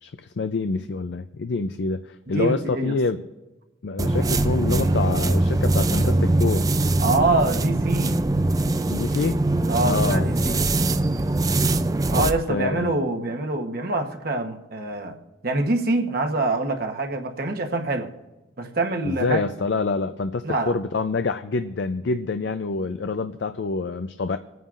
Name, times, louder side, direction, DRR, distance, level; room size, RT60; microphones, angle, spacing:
voice 1, 0.0-3.2 3.8-6.6 8.9-9.4 9.8-10.3 12.2-12.9 19.1-24.4, left 3 dB, 60° left, 0.4 m, -26 dB
voice 2, 2.3-3.0 7.0-8.2 9.7-10.6 12.1-15.2 15.4-18.1 18.6-19.4 20.4-20.8, right 2 dB, 50° right, 1.0 m, -25 dB
sound 1, 4.0-12.4, right 2 dB, 20° right, 0.4 m, -22 dB
27.5 x 9.2 x 2.5 m
head